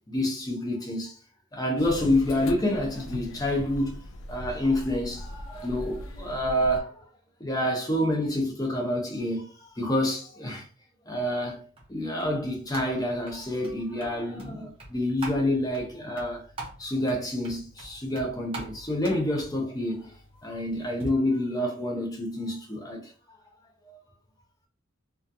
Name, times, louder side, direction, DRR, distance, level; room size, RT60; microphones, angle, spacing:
voice 1, 0.1-1.2 1.5-4.0 4.3-7.1 7.4-10.7 11.0-11.6 11.9-16.4 16.8-20.1 20.4-23.4 23.9-24.0, left 1 dB, 15° left, 0.6 m, -28 dB
sound 1, 1.8-6.8, left 1 dB, 60° left, 0.3 m, -39 dB
sound 2, 11.4-21.1, right 2 dB, 25° right, 0.7 m, -44 dB
2.4 x 2.3 x 2.6 m
head